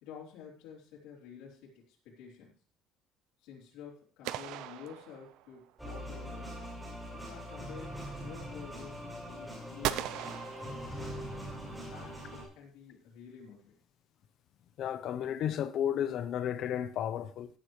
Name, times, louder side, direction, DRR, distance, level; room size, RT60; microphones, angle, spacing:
voice 1, 0.0-2.6 3.4-6.5 7.1-10.2 10.6-11.1 11.8-13.8, left 7 dB, 85° left, 3.8 m, -50 dB
sound 1, 4.2-5.7 9.8-11.4, right 13 dB, 70° right, 0.6 m, -38 dB
sound 2, 5.8-12.4, equal, 5° right, 5.6 m, -42 dB
voice 2, 14.8-17.5, left 10 dB, 45° left, 0.8 m, -33 dB
16.5 x 10.0 x 3.2 m
cardioid pair, 180°, 0 cm